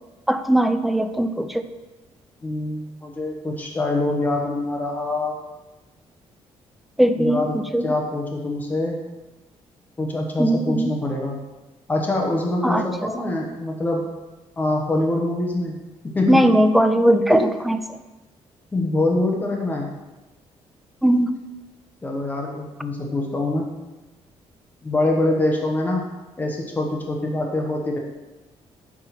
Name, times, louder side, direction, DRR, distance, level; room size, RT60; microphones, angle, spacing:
voice 1, 0.3-1.6 7.0-7.4 7.7-7.9 10.4-11.0 12.6-12.8 16.3-17.8 21.0-21.4, right 1 dB, ahead, 8 dB, 0.4 m, -19 dB
voice 2, 2.4-5.4 7.2-9.0 10.0-11.4 11.9-14.0 14.6-15.8 16.0-16.5 17.3-17.4 18.7-19.9 22.0-23.7 24.8-26.0 26.4-28.0, left 2 dB, 15° left, 0 dB, 1.0 m, -24 dB
9.1 x 3.7 x 5.8 m, 1.1 s
cardioid pair, 160°, 11 cm